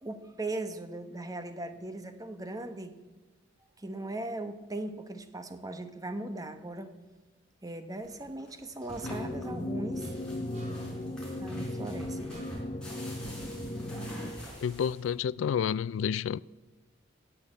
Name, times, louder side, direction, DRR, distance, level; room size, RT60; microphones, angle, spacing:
voice 1, 0.0-3.0 3.8-6.9 7.6-10.1 11.4-12.5, right 2 dB, 20° right, 0.9 m, -38 dB
sound 1, 8.0-15.3, equal, 5° left, 4.8 m, -47 dB
sound 2, 9.0-14.3, left 1 dB, 35° left, 0.9 m, -36 dB
sound 3, 10.5-11.1 12.3-12.9, right 2 dB, 35° right, 3.8 m, -51 dB
voice 2, 14.6-16.4, left 8 dB, 90° left, 0.3 m, -29 dB
17.0 x 7.0 x 7.5 m
head